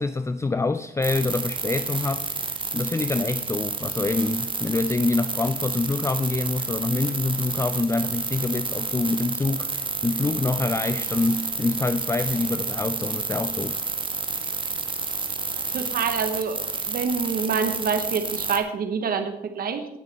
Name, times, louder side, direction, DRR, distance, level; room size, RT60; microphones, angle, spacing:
voice 1, 0.0-13.8, left 3 dB, 15° left, 11 dB, 0.4 m, -26 dB
sound 1, 1.0-18.6, right 4 dB, 30° right, 1.3 m, -30 dB
voice 2, 15.7-16.6 16.9-19.9, right 5 dB, 65° right, 7 dB, 1.1 m, -26 dB
17.5 x 6.5 x 4.1 m, 0.85 s
cardioid pair, 80°, 17 cm